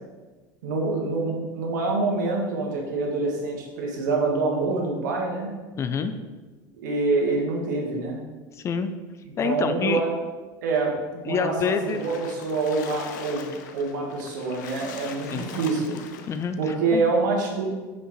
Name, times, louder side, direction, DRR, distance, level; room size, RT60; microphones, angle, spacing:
voice 1, 0.6-5.5 6.8-8.2 9.2-10.1 10.6-13.5 13.7-16.0 16.6-17.7, right 3 dB, 90° right, -1 dB, 1.5 m, -26 dB
voice 2, 5.8-6.1 8.5-8.9 9.4-10.0 11.3-12.0 15.3-15.5 16.3-17.0, left 6 dB, 30° left, 9 dB, 0.4 m, -27 dB
Splash splatter, 11.7-16.5, left 6 dB, 90° left, 0.6 m, -41 dB
6.4 x 5.0 x 3.1 m, 1.3 s
supercardioid pair, 120°, 10 cm